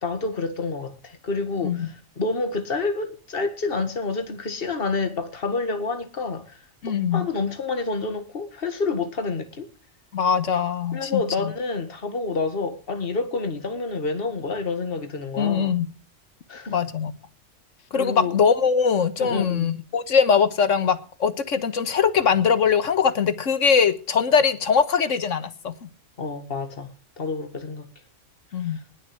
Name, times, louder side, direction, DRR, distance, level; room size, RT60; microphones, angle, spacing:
voice 1, 0.0-6.6 6.9-9.7 10.9-15.8 16.5-16.8 17.9-18.4 19.2-19.8 26.2-26.9 27.2-27.9 28.7-28.8, left 3 dB, 50° left, 2.1 m, -28 dB
voice 2, 6.8-7.3 10.1-11.5 15.4-15.9 16.7-17.1 17.9-25.9 28.5-28.8, left 6 dB, 75° left, 1.6 m, -22 dB
20.0 x 7.0 x 7.8 m
omnidirectional pair, 1.3 m